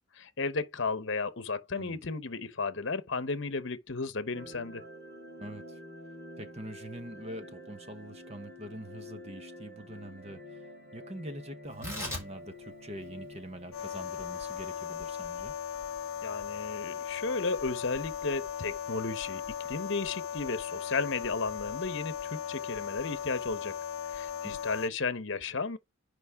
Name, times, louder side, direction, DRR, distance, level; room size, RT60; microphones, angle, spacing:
voice 1, 0.1-4.8 16.2-19.4 19.7-23.7 24.1-25.8, left 4 dB, 60° left, 1.0 m, -34 dB
voice 2, 1.7-2.1 5.4-5.8 6.4-10.6 10.9-15.5 24.4-24.6, right 1 dB, 30° right, 1.2 m, -44 dB
sound 1, 4.3-14.5, left 1 dB, 50° right, 3.8 m, -48 dB
Tearing, 11.6-18.4, left 1 dB, 15° right, 4.5 m, -45 dB
sound 2, 13.7-24.9, left 8 dB, 85° left, 0.5 m, -37 dB
6.1 x 5.3 x 4.7 m
head